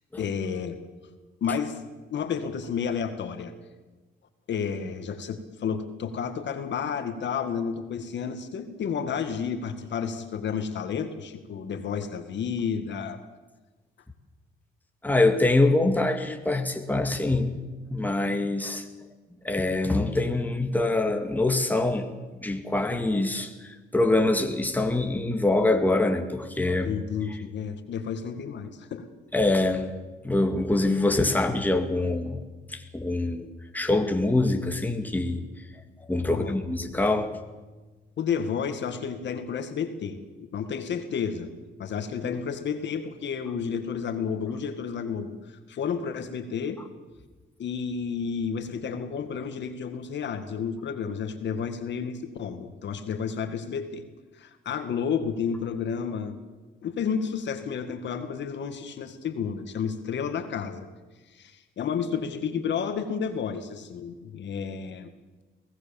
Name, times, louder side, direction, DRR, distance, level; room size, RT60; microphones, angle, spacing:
voice 1, 0.2-0.8 1.4-1.8 2.1-3.5 4.5-13.2 26.8-29.1 36.3-36.6 38.2-41.5 41.8-46.8 47.6-54.0 54.4-56.4 56.8-60.9 61.3-65.1, left 6 dB, 65° left, 8 dB, 2.1 m, -31 dB
voice 2, 15.0-17.5 17.9-18.9 19.4-22.1 22.4-26.9 27.3-27.4 29.3-29.9 30.2-35.4 36.1-37.4, left 2 dB, 10° left, 4 dB, 2.2 m, -25 dB
23.5 x 17.5 x 7.2 m, 1.3 s
cardioid pair, 90°, 20 cm